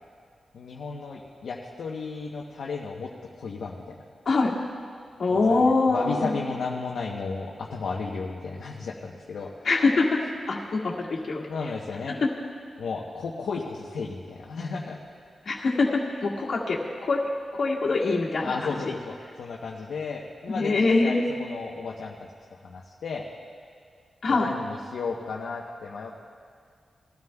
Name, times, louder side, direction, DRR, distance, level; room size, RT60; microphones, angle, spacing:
voice 1, 0.5-4.0 5.3-5.6 5.9-9.5 11.5-12.2 12.8-15.0 18.4-22.2 22.6-23.3 24.3-26.2, left 4 dB, 85° left, -3 dB, 0.9 m, -34 dB
voice 2, 5.2-6.3 9.7-10.2 10.5-11.4 12.1-12.2 15.5-15.9 16.2-17.2 17.6-18.5 20.5-21.2 24.2-24.5, left 3 dB, 65° left, -3 dB, 1.8 m, -23 dB
20.0 x 13.0 x 2.3 m, 2.1 s
wide cardioid pair, 90°, 0 cm